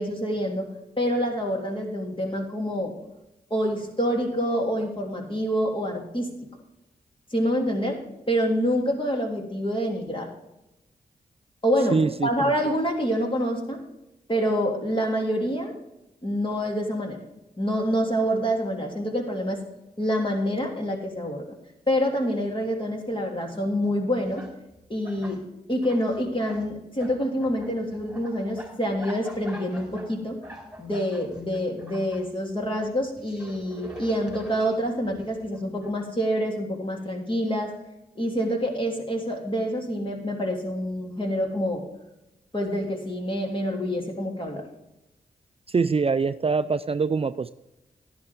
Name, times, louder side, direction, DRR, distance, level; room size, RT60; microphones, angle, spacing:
voice 1, 0.0-3.0 3.5-6.3 7.3-10.3 11.6-13.8 14.3-15.7 16.2-17.2 17.6-19.6 20.0-21.5 21.9-24.4 24.9-25.4 25.7-30.4 30.8-37.7 38.1-41.9 42.5-44.6, equal, 30° left, 1 dB, 3.2 m, -27 dB
voice 2, 11.9-12.5 45.7-47.5, right 4 dB, 35° right, 12 dB, 0.4 m, -24 dB
sound 1, 23.8-23.9 24.2-25.4 25.7-26.7 27.0-32.2 32.6-35.9, equal, 5° right, 4.6 m, -44 dB
11.5 x 11.0 x 3.6 m, 0.92 s
cardioid pair, 45°, 16 cm